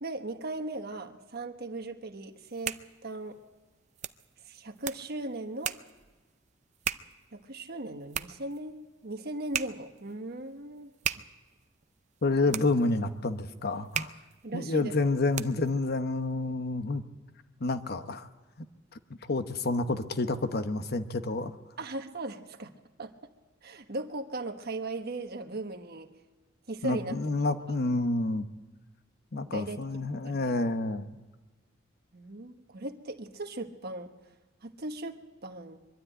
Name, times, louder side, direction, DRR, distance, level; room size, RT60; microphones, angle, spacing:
voice 1, 0.0-3.4 4.4-5.7 7.3-10.9 12.5-12.6 14.4-15.1 21.8-22.7 23.0-23.1 23.6-26.1 26.7-27.2 27.4-27.8 29.4-29.8 30.2-30.7 32.1-34.1 34.6-35.8, right 2 dB, 55° right, 6 dB, 1.3 m, -38 dB
sound 1, 2.3-15.8, right 8 dB, 35° right, 0.6 m, -40 dB
voice 2, 12.2-14.1 14.5-17.0 17.6-18.3 19.3-21.5 26.8-28.4 29.3-31.2, left 2 dB, 55° left, 10 dB, 1.0 m, -29 dB
23.0 x 12.5 x 9.0 m, 1.2 s
head